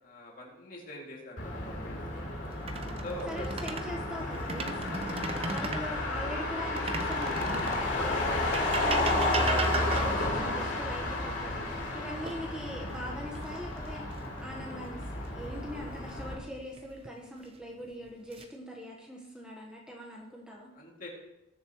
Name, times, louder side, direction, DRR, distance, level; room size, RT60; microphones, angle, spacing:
voice 1, 0.0-2.0 3.0-3.5 4.2-4.3 4.9-5.2 7.9-8.1 11.9-12.1 20.7-21.1, left 1 dB, 40° left, -2 dB, 2.4 m, -44 dB
Motor vehicle (road), 1.4-16.3, left 2 dB, 60° left, 3.1 m, -32 dB
sound 1, 2.5-3.9 4.3-5.9 6.8-7.9 8.5-10.3 12.3-12.9 13.3-13.6 16.5-17.1 17.8-18.4, right 3 dB, 30° right, 0.6 m, -35 dB
voice 2, 3.3-5.0 5.3-14.0 14.4-20.7, equal, 5° right, -2 dB, 1.1 m, -42 dB
20.0 x 6.8 x 3.0 m, 0.95 s
head